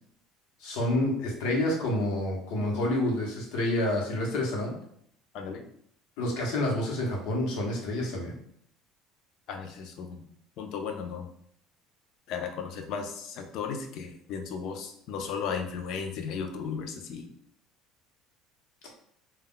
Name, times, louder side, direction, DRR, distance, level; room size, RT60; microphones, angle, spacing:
voice 1, 0.6-4.7 6.2-8.4, left 1 dB, 70° left, -1 dB, 0.8 m, -28 dB
voice 2, 9.5-10.2 10.6-11.3 12.3-17.3, left 6 dB, 50° left, 5 dB, 0.4 m, -35 dB
2.2 x 2.1 x 3.6 m, 0.69 s
cardioid pair, 160°, 0 cm